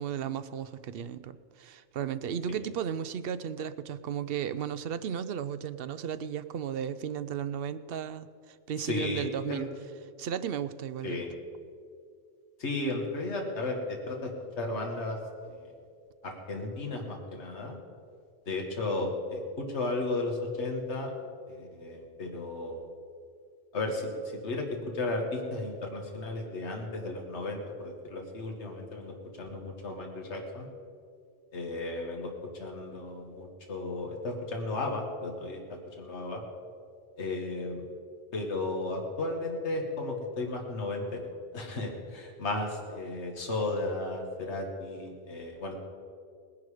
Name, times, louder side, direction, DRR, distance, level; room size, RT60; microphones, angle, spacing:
voice 1, 0.0-9.7 10.2-11.2, right 8 dB, 60° right, 13 dB, 0.7 m, -35 dB
voice 2, 8.8-9.6 11.0-11.3 12.6-14.3 14.6-15.7 16.2-17.8 18.5-21.1 21.5-22.9 23.7-24.1 24.4-24.7 24.9-30.7 31.5-32.3 32.6-36.4 37.2-37.8 38.3-41.2 41.5-45.7, left 2 dB, 70° left, 1 dB, 1.9 m, -34 dB
19.0 x 10.5 x 4.9 m, 2.2 s
omnidirectional pair, 1.2 m